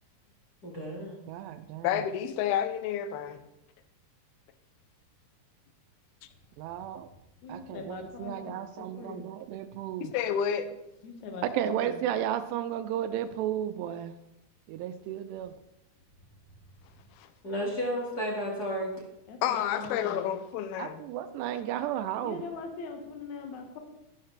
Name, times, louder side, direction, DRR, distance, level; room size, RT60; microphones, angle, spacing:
voice 1, 0.6-1.2 17.4-19.0, equal, 40° left, -2 dB, 1.4 m, -32 dB
voice 2, 1.3-2.0 6.6-7.1 7.5-10.1 11.5-14.1 14.7-15.5 20.8-22.4, right 10 dB, 85° right, 10 dB, 2.8 m, -33 dB
voice 3, 1.8-3.4 10.0-10.7 17.2-17.3 19.4-21.0, left 9 dB, 80° left, 10 dB, 2.5 m, -30 dB
voice 4, 7.4-9.3 11.0-12.0 19.3-20.3 22.2-23.8, left 4 dB, 55° left, 4 dB, 2.4 m, -41 dB
13.0 x 11.5 x 3.3 m, 0.88 s
omnidirectional pair, 4.8 m